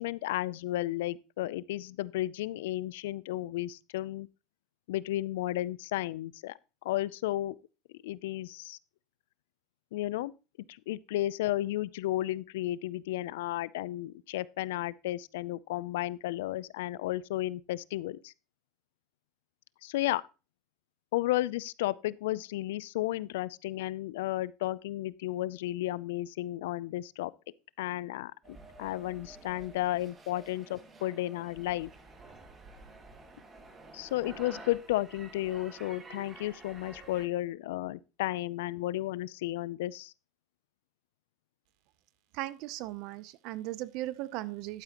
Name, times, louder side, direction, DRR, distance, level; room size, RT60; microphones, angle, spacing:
voice 1, 0.0-4.3 4.9-7.6 8.0-8.8 9.9-10.3 10.7-18.3 19.8-20.2 21.1-27.3 27.8-31.9 33.9-40.1, left 15 dB, 85° left, 0.4 m, -33 dB
sound 1, 28.4-37.3, right 3 dB, 30° right, 2.1 m, -51 dB
voice 2, 42.3-44.8, right 16 dB, 65° right, 0.6 m, -37 dB
11.5 x 8.9 x 2.9 m
supercardioid pair, 100°, 0 cm